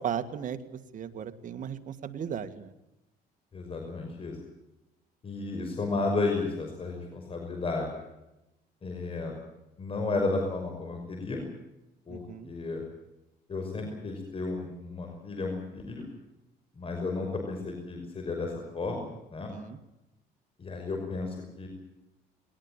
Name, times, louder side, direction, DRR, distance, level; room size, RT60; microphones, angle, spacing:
voice 1, 0.0-2.7 12.1-12.5 19.5-19.8, right 8 dB, 50° right, 8 dB, 2.1 m, -36 dB
voice 2, 3.5-4.4 5.2-7.9 8.8-9.3 9.8-11.4 12.1-12.8 13.5-16.1 16.8-19.5 20.6-21.7, left 3 dB, 35° left, 3 dB, 5.6 m, -33 dB
20.0 x 20.0 x 9.0 m, 0.93 s
cardioid pair, 110°, 17 cm